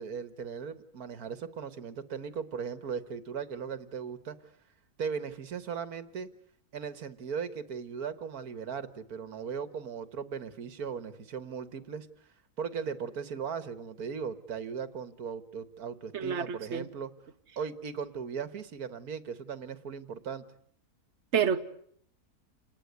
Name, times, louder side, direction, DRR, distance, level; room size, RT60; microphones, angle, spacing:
voice 1, 0.0-4.4 5.0-6.3 6.7-12.1 12.6-17.1 17.6-20.4, right 6 dB, 80° right, 1.9 m, -38 dB
voice 2, 16.1-16.9 21.3-21.6, right 7 dB, 50° right, 1.6 m, -28 dB
29.0 x 20.0 x 9.4 m
omnidirectional pair, 1.6 m